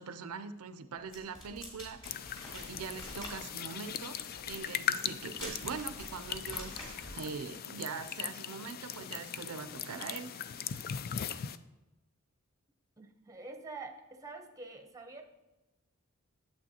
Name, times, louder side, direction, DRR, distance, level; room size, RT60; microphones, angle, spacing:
voice 1, 0.0-10.7, right 5 dB, 80° right, 10 dB, 0.5 m, -43 dB
sound 1, 1.1-7.2, left 1 dB, 25° left, 2.6 m, -47 dB
sound 2, 2.0-11.6, left 9 dB, 45° left, 0.3 m, -39 dB
voice 2, 13.0-15.2, right 3 dB, 15° right, 5 dB, 0.7 m, -46 dB
8.7 x 7.7 x 2.8 m, 1.1 s
head